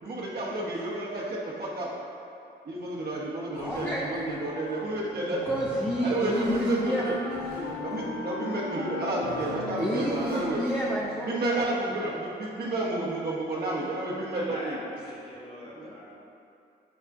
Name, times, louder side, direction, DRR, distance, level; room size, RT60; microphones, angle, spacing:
voice 1, 0.0-1.9 2.6-5.4 6.0-7.2 7.8-10.7 11.3-14.8 15.7-15.9, right 2 dB, 50° right, -5 dB, 0.9 m, -31 dB
sound 1, 3.5-11.0, equal, 45° left, 1.5 m, -42 dB
voice 2, 3.6-4.0 5.2-7.1 9.7-11.6 11.9-12.1, equal, 5° left, -5 dB, 0.6 m, -30 dB
Wind instrument woodwind instrument, 5.3-11.4, left 4 dB, 65° left, 0.4 m, -39 dB
voice 3, 14.3-16.1, left 1 dB, 25° left, -6 dB, 1.3 m, -42 dB
7.1 x 2.4 x 2.4 m, 2.7 s
hypercardioid pair, 40°, 21 cm